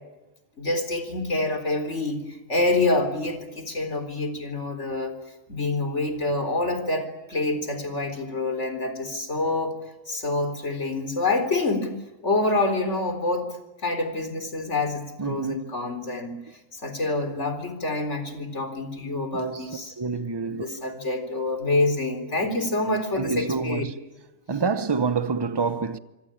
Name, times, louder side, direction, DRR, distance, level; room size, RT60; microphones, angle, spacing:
voice 1, 0.6-5.1 5.5-9.8 10.1-12.0 12.2-13.5 13.8-16.3 16.7-20.0 20.5-23.8, left 2 dB, 60° left, 4.3 m, -27 dB
voice 2, 15.2-15.7 19.4-19.6 20.0-20.7 23.1-23.9 24.5-26.0, right 5 dB, 20° right, 0.9 m, -27 dB
26.0 x 25.0 x 8.8 m
omnidirectional pair, 1.3 m